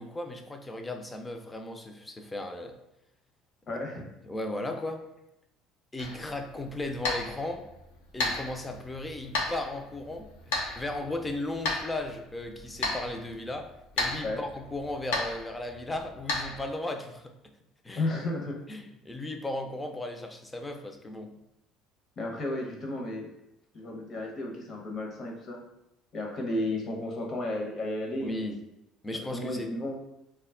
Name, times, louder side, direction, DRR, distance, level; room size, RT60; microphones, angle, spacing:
voice 1, 0.0-2.7 4.2-5.0 5.9-7.7 8.1-17.3 17.8-18.1 18.7-21.3 28.2-28.6 29.0-29.7, left 2 dB, 15° left, 5 dB, 0.4 m, -36 dB
voice 2, 3.7-4.1 14.2-14.4 17.9-18.6 22.2-23.3 23.7-25.6 26.1-28.5 29.3-29.9, left 1 dB, 45° left, 1 dB, 0.8 m, -33 dB
sound 1, 6.0-16.7, left 2 dB, 85° left, 0.5 m, -35 dB
2.2 x 2.0 x 3.5 m, 0.87 s
hypercardioid pair, 75°, 0 cm